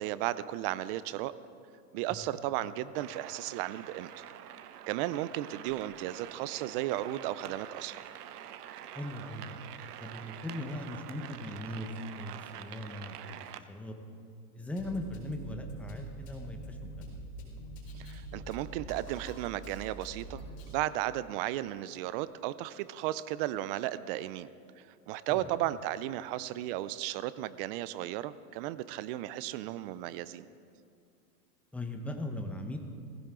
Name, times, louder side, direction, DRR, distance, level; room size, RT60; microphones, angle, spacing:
voice 1, 0.0-1.3 1.9-4.2 4.9-8.0 18.0-24.5 24.8-30.5, right 14 dB, 40° right, 16 dB, 0.5 m, -35 dB
sound 1, 2.9-13.6, right 10 dB, 80° right, 0.9 m, -46 dB
voice 2, 8.9-9.6 10.0-14.0 14.5-17.1 25.3-25.5 31.7-32.8, left 1 dB, 5° left, 4 dB, 1.1 m, -39 dB
Drum kit, 14.8-20.8, right 1 dB, 80° left, 4.3 m, -45 dB
19.0 x 15.5 x 3.8 m, 2.3 s
hypercardioid pair, 125°, 46 cm